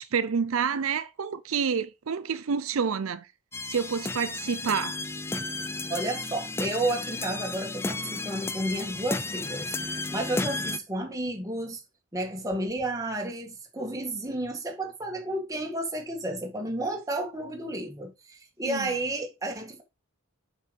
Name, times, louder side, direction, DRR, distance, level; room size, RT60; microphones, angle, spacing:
voice 1, 0.0-3.3 3.7-5.0 18.7-18.9, right 6 dB, 75° right, 0.5 m, -28 dB
sound 1, 3.5-10.8, left 3 dB, 10° left, 0.4 m, -33 dB
voice 2, 5.9-9.7 10.1-11.8 12.1-19.8, right 1 dB, 15° right, 2.0 m, -32 dB
7.4 x 5.6 x 5.3 m
head